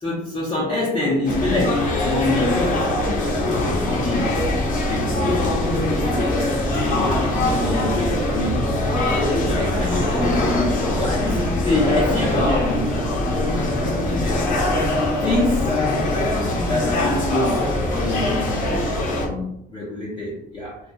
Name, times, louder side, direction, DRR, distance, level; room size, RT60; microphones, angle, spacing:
voice 1, 0.0-2.7 3.1-4.4 4.7-5.2 6.3-8.7 9.1-13.0 15.2-15.8 16.6-20.8, left 1 dB, 25° left, -6 dB, 0.7 m, -26 dB
sound 1, 1.3-19.3, left 2 dB, 55° left, 0.8 m, -22 dB
sound 2, 3.3-14.9, equal, 50° right, 0.5 m, -29 dB
2.7 x 2.3 x 2.2 m, 0.77 s
cardioid pair, 110°, 17 cm